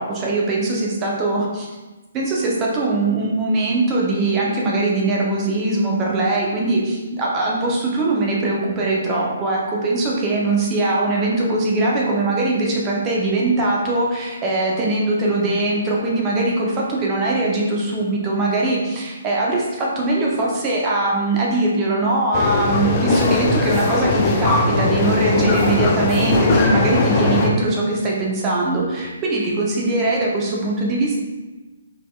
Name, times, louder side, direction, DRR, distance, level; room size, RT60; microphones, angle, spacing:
voice 1, 0.0-1.7 2.1-31.2, right 2 dB, 20° right, -3 dB, 0.8 m, -21 dB
sound 1, 22.3-27.5, left 3 dB, 30° left, 0.4 m, -19 dB
4.0 x 3.7 x 2.3 m, 1.2 s
figure-of-eight pair, 130°, 0 cm